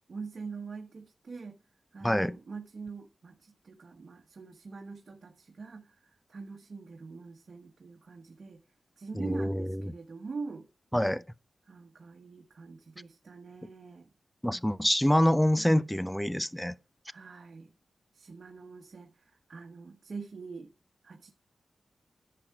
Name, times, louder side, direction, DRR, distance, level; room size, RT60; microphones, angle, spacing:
voice 1, 0.1-1.6 1.9-6.0 6.3-8.6 9.0-10.7 11.7-14.1 17.1-17.7 18.1-20.7 21.0-21.3, right 4 dB, 60° right, 1.3 m, -44 dB
voice 2, 2.0-2.4 9.1-9.9 10.9-11.2 14.4-16.7, equal, 5° left, 0.6 m, -26 dB
10.5 x 7.8 x 4.8 m
cardioid pair, 60°, 0 cm